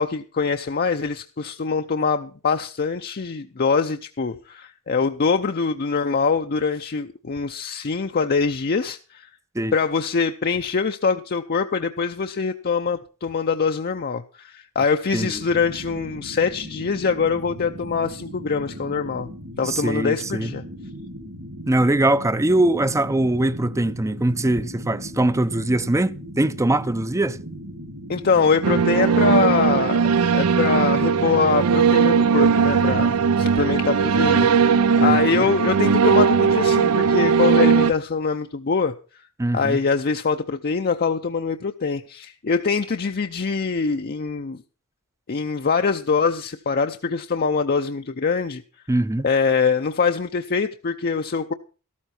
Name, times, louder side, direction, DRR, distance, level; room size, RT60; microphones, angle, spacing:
voice 1, 0.0-9.3 9.7-19.3 19.6-20.6 28.1-30.1 30.3-39.2 39.5-44.6 45.3-48.6 49.2-51.5, left 5 dB, 45° left, 0.6 m, -23 dB
sound 1, 15.3-35.3, equal, 60° right, 2.5 m, -38 dB
voice 2, 19.6-20.5 21.7-27.4 35.0-35.5 39.4-39.8 48.9-49.3, right 1 dB, 15° right, 0.5 m, -22 dB
sound 2, 28.6-37.9, right 6 dB, 80° right, 0.6 m, -18 dB
13.5 x 13.0 x 4.4 m
head